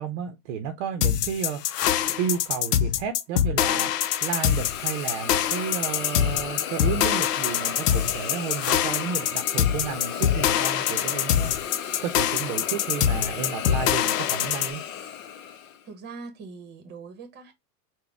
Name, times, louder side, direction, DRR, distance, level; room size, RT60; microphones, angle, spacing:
voice 1, 0.0-1.6 2.1-3.9 4.2-11.5 12.0-14.8, right 7 dB, 50° right, 0.7 m, -32 dB
sound 1, 1.0-14.7, left 10 dB, 90° left, 0.6 m, -24 dB
Hiss, 3.7-15.8, left 8 dB, 60° left, 0.8 m, -35 dB
voice 2, 15.8-17.5, right 4 dB, 20° right, 0.9 m, -42 dB
3.9 x 2.2 x 3.3 m
hypercardioid pair, 125°, 47 cm